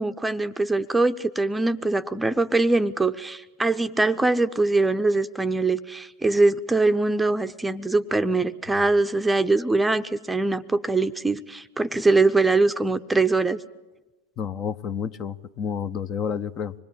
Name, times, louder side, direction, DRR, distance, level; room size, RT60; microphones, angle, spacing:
voice 1, 0.0-13.6, right 3 dB, 5° right, 10 dB, 0.8 m, -22 dB
voice 2, 14.4-16.7, left 7 dB, 30° left, 14 dB, 0.8 m, -30 dB
25.5 x 20.5 x 8.7 m, 1.2 s
figure-of-eight pair, 90°, 0 cm